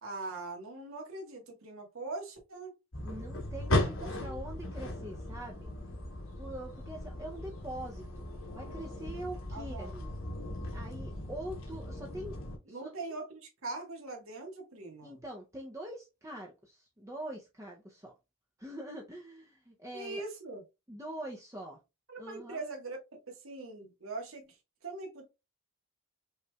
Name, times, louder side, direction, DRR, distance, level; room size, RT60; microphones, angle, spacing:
voice 1, 0.0-2.7 4.0-4.4 9.5-9.9 12.7-15.2 19.9-20.6 22.1-23.0 23.3-24.6 24.8-25.2, right 3 dB, 75° right, 1.5 m, -42 dB
sound 1, 2.9-12.6, left 1 dB, 65° left, 1.3 m, -37 dB
voice 2, 3.0-5.7 6.4-8.3 8.5-10.1 10.7-12.4 12.7-13.2 15.0-18.1 18.6-20.2 20.9-21.8 22.2-22.6, right 1 dB, 15° right, 0.6 m, -44 dB
5.4 x 3.1 x 2.3 m
head